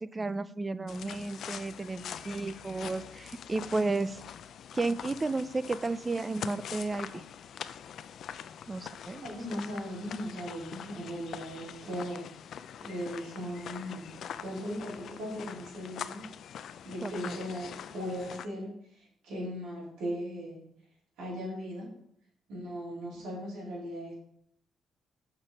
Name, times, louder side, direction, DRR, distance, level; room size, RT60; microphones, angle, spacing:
voice 1, 0.0-4.2 4.7-7.2 8.7-9.3 17.0-17.4, right 3 dB, 25° right, 15 dB, 0.4 m, -33 dB
sound 1, 0.9-18.5, left 8 dB, 65° left, 0.4 m, -44 dB
voice 2, 9.2-12.2 12.8-14.1 14.4-16.3 16.8-20.6 21.2-21.9 22.5-24.2, equal, 90° right, -6 dB, 3.8 m, -38 dB
6.8 x 5.9 x 5.5 m, 0.71 s
cardioid pair, 90°, 0 cm